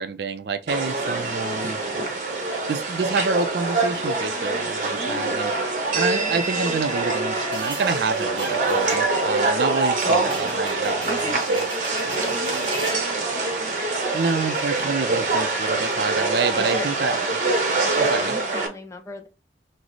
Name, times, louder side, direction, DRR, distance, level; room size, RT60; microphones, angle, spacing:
voice 1, 0.0-1.8 2.7-5.5 5.9-11.7 14.1-17.4 18.0-18.4, right 4 dB, 65° right, 0.4 m, -28 dB
sound 1, 0.7-18.7, right 3 dB, 45° right, 0.9 m, -24 dB
voice 2, 4.9-5.4 10.0-10.4 11.1-13.5 16.6-16.9 17.8-19.3, equal, 15° left, 0.6 m, -37 dB
sound 2, 7.5-13.1, right 2 dB, 25° right, 1.2 m, -37 dB
6.1 x 2.1 x 3.1 m
head